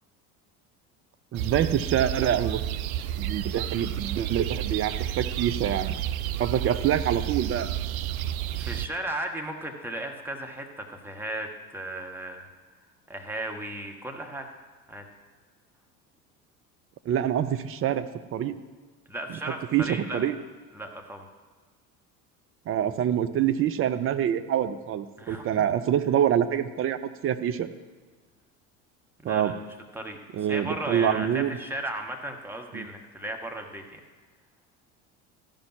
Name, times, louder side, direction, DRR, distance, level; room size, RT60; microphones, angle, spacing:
voice 1, 1.3-2.6 3.2-5.9 6.4-7.7 17.1-18.5 19.3-19.4 19.7-20.3 22.7-27.7 29.2-29.5 30.3-31.6 32.7-32.9, right 10 dB, 30° right, 11 dB, 0.6 m, -26 dB
sound 1, 1.3-8.9, right 12 dB, 70° right, 0.5 m, -31 dB
voice 2, 8.6-12.5 13.1-14.5 14.9-15.0 19.1-20.2 20.7-21.3 25.2-25.7 29.2-29.5 29.9-34.0, right 1 dB, 5° right, 2 dB, 1.4 m, -35 dB
14.0 x 5.4 x 5.8 m, 1.4 s
figure-of-eight pair, 70°, 44 cm